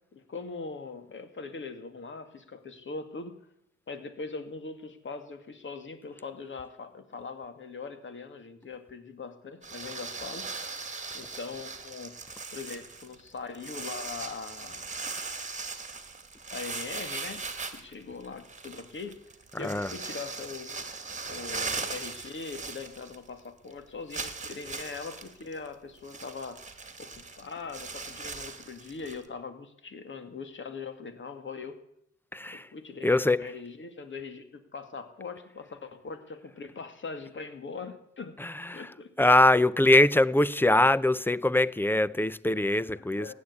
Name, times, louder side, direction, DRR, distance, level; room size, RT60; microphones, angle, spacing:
voice 1, 0.1-3.3 3.9-10.5 11.1-12.1 12.5-15.0 16.5-17.4 17.7-19.2 19.6-20.9 21.2-26.6 27.0-31.8 32.5-34.4 34.7-38.3 38.7-39.1 43.0-43.3, left 4 dB, 40° left, 2.5 m, -41 dB
sound 1, 9.6-23.4 23.7-23.8 24.1-29.3, right 4 dB, 25° right, 2.1 m, -39 dB
voice 2, 19.5-19.9 32.3-32.7 33.0-33.5 38.4-38.9 39.2-43.3, left 1 dB, 5° left, 0.6 m, -23 dB
16.0 x 10.5 x 8.5 m
cardioid pair, 90°, 30 cm